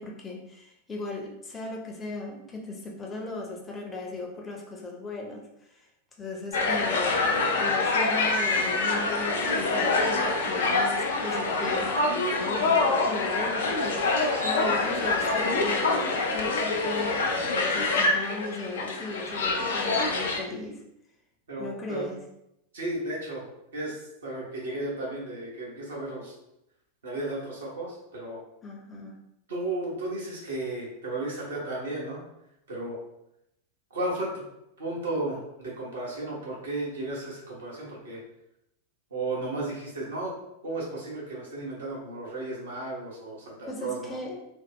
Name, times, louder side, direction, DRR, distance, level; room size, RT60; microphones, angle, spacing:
voice 1, 0.0-5.9 6.2-20.8 21.6-22.2 28.6-29.2 43.7-44.5, left 3 dB, 15° left, 0 dB, 0.7 m, -37 dB
sound 1, 6.5-20.4, left 3 dB, 60° left, 0.5 m, -26 dB
voice 2, 21.5-22.1 22.7-23.5 23.7-24.0 24.2-26.3 27.0-28.4 29.5-32.2 32.7-33.0 33.9-34.4 34.8-38.2 39.1-40.3 40.6-44.1, right 2 dB, 65° right, -4 dB, 1.2 m, -34 dB
3.0 x 2.1 x 3.6 m, 0.82 s
figure-of-eight pair, 90°, 0 cm